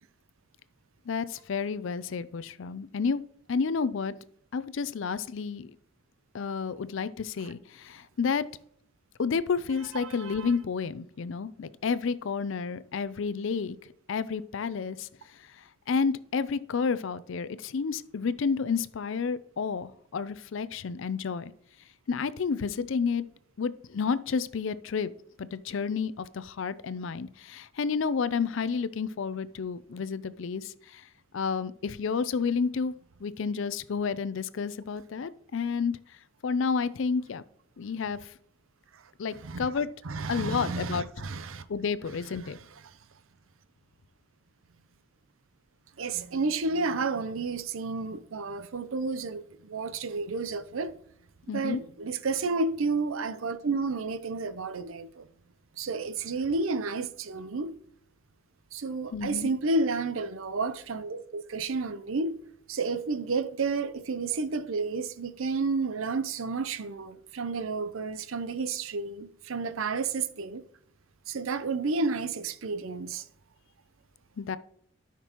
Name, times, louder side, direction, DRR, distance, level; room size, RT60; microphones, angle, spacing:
voice 1, 1.1-3.2 3.5-4.1 4.5-5.7 6.3-8.4 9.2-13.8 14.1-15.1 15.6-21.5 22.1-23.2 23.6-25.1 25.4-31.1 31.3-32.9 33.2-36.0 36.4-37.4 37.8-38.3 39.2-39.9 40.3-41.1 41.7-42.6 51.5-51.8 59.1-59.5 74.4-74.6, left 5 dB, 65° left, 0.4 m, -30 dB
voice 2, 10.0-10.5 39.4-39.7 40.0-41.6 42.4-42.5 46.0-50.9 51.5-55.3 55.8-57.8 58.7-62.4 62.7-70.6 71.3-73.2, right 3 dB, 75° right, 0.6 m, -31 dB
12.5 x 6.0 x 3.0 m
head